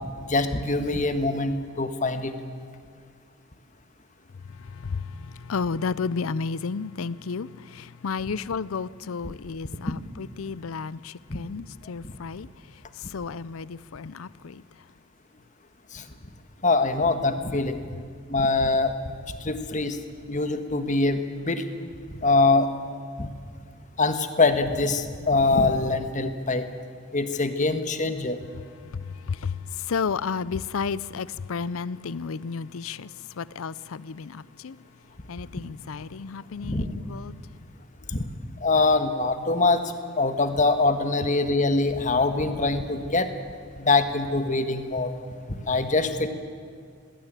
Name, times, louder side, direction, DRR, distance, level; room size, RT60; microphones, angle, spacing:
voice 1, 0.2-2.3 15.9-16.0 16.6-17.8 18.3-18.9 19.4-20.0 20.3-21.6 22.1-22.7 23.2-23.3 24.0-26.6 27.1-28.4 36.6-36.8 38.1-38.3 38.6-39.8 40.2-43.3 43.8-45.1 45.7-46.3, left 3 dB, 40° left, 1.4 m, -23 dB
voice 2, 4.5-14.6 28.8-34.8 35.3-37.4, left 5 dB, 85° left, 0.5 m, -32 dB
19.5 x 17.0 x 9.0 m
head